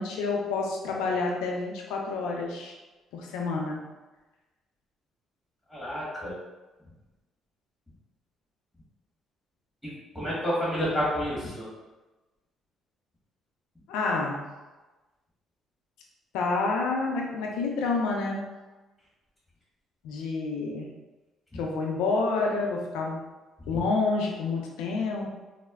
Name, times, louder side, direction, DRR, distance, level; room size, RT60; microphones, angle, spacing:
voice 1, 0.0-2.7 3.1-3.8 13.9-14.4 16.3-18.4 20.0-20.9 21.5-23.2 23.7-25.3, left 3 dB, 85° left, 0 dB, 0.5 m, -28 dB
voice 2, 5.7-6.4 10.1-11.7, equal, 5° left, -7 dB, 1.3 m, -29 dB
4.1 x 2.0 x 2.3 m, 1.2 s
supercardioid pair, 75°, 0 cm